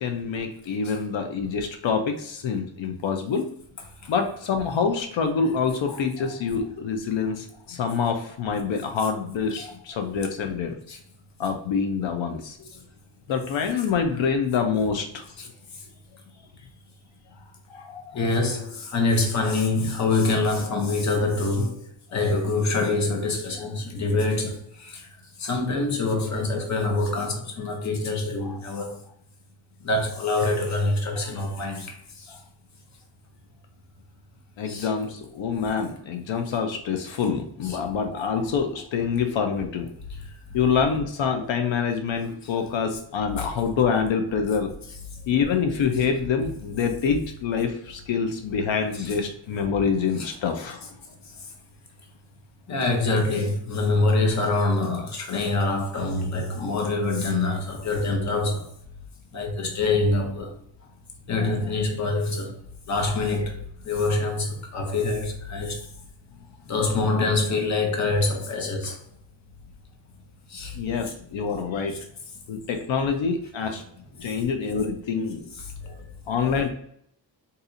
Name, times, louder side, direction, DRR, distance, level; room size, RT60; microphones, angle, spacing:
voice 1, 0.0-3.5 4.1-10.8 11.4-12.6 13.3-15.2 17.7-18.2 28.5-28.6 32.3-32.4 34.6-39.9 40.5-44.7 45.3-50.9 56.6-56.7 70.8-72.0 72.5-73.8 74.2-75.5 76.3-76.7, left 6 dB, 75° left, 0.6 m, -26 dB
voice 2, 18.1-21.9 22.1-25.1 25.4-29.0 29.8-32.3 34.7-34.9 37.6-37.8 42.4-42.5 43.4-43.5 48.9-49.1 50.2-50.3 52.7-58.7 59.3-60.5 61.3-62.6 62.9-65.8 66.7-69.0 70.5-70.7 71.0-71.1 74.2-74.3 75.6-75.9, left 3 dB, 40° left, 0.7 m, -25 dB
4.0 x 2.7 x 2.5 m
wide cardioid pair, 175°, 46 cm